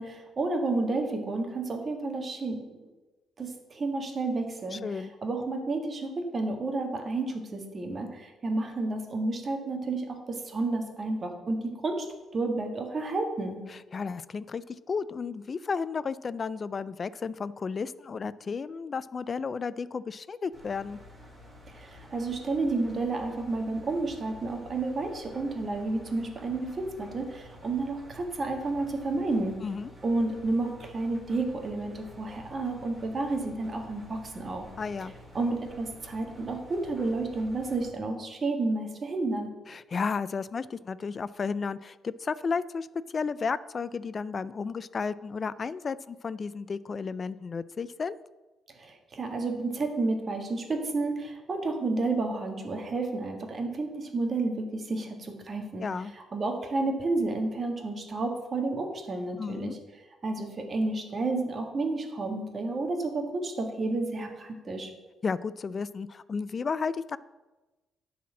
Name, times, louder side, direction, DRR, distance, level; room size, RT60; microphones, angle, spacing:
voice 1, 0.0-2.9 3.4-12.1 12.3-13.6 21.7-29.5 30.0-34.7 35.3-39.5 48.7-55.9 56.3-59.8 60.2-64.9, right 3 dB, 40° right, 4 dB, 1.6 m, -31 dB
voice 2, 4.7-5.1 13.7-21.0 29.6-29.9 34.8-35.1 39.7-48.2 55.8-56.1 59.4-59.8 65.2-67.2, left 5 dB, 40° left, 17 dB, 0.3 m, -33 dB
Engine, 20.5-37.9, left 1 dB, 15° right, 2.8 m, -50 dB
10.0 x 4.3 x 7.4 m, 1.2 s
cardioid pair, 90°, 0 cm